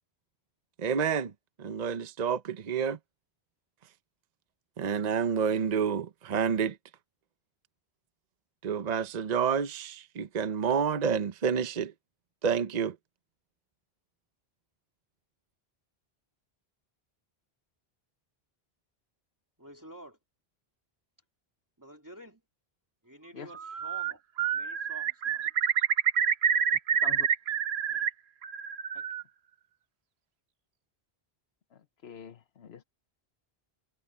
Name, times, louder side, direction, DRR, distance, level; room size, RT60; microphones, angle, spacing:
voice 1, 0.8-1.3 1.6-3.0 4.8-6.8 8.6-11.9 12.4-13.0, right 6 dB, 45° right, 0.8 m, -29 dB
voice 2, 19.6-20.2 21.8-22.4 23.0-24.2 24.5-25.4 26.2-26.3 27.9-28.0 28.9-29.1, right 1 dB, 20° right, 2.9 m, -50 dB
Bird, 23.5-24.1 24.4-28.1 28.4-29.2, right 7 dB, 90° right, 1.1 m, -28 dB
voice 3, 31.7-32.8, left 7 dB, 80° left, 1.2 m, -46 dB
omnidirectional pair, 1.1 m